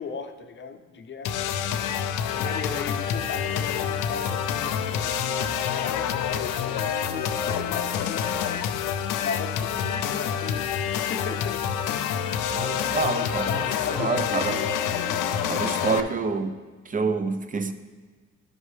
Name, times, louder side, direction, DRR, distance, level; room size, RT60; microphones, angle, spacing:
voice 1, 0.0-1.4 2.2-8.4 9.1-11.6 11.9-12.1 12.6-14.6 15.7-15.9, left 5 dB, 40° left, 7 dB, 0.6 m, -38 dB
sound 1, 1.2-16.0, left 8 dB, 90° left, 0.5 m, -27 dB
voice 2, 12.5-13.7 14.0-14.6 15.5-16.6 16.9-17.7, right 4 dB, 25° right, 9 dB, 0.5 m, -27 dB
11.5 x 5.4 x 3.2 m, 1.4 s
cardioid pair, 90°, 30 cm